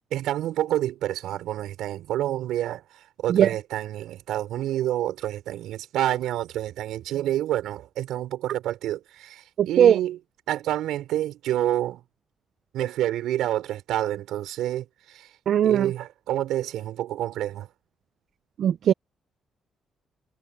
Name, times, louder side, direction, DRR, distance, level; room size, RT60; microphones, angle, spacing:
voice 1, 0.1-2.8 3.2-10.2 10.5-12.0 12.7-14.8 15.1-15.3 15.6-17.7, right 13 dB, 85° right, 4.6 m, -28 dB
voice 2, 9.6-10.0 15.5-15.9 18.6-18.9, right 9 dB, 65° right, 0.4 m, -19 dB
cardioid pair, 90°, 0 cm